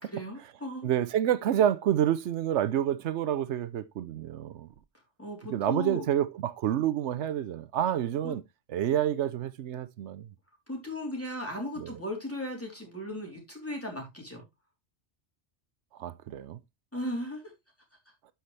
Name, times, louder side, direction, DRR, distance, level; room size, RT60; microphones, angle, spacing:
voice 1, 0.0-0.9 5.2-6.1 8.2-8.4 10.7-14.4 16.9-17.5, left 1 dB, 10° left, 3.5 m, -36 dB
voice 2, 0.8-4.7 5.5-8.4 8.7-10.3 11.8-11.9 16.0-16.6, right 10 dB, 85° right, 0.9 m, -28 dB
12.5 x 5.8 x 3.2 m
omnidirectional pair, 1.1 m